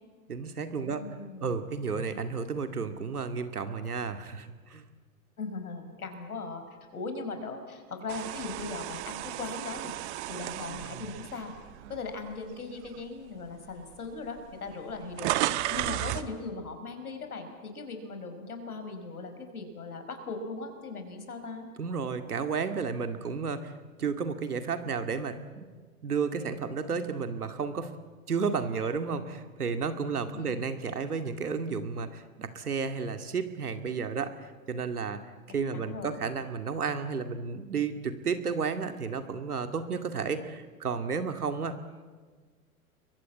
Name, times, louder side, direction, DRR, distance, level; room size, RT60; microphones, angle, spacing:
voice 1, 0.3-1.0 1.4-4.8 21.8-23.7 24.0-25.7 26.0-28.0 28.3-35.2 35.5-41.8, right 5 dB, 80° right, 8 dB, 2.3 m, -32 dB
voice 2, 0.9-1.5 5.4-6.6 6.9-9.9 10.3-11.5 11.9-21.7 30.3-30.7 35.7-36.2, left 3 dB, 75° left, 7 dB, 5.1 m, -39 dB
sound 1, 8.1-12.3 12.8-13.0 13.9-14.0 14.2-16.3, right 15 dB, 50° right, 1.4 m, -34 dB
29.5 x 23.0 x 8.6 m, 1.5 s
figure-of-eight pair, 100°, 44 cm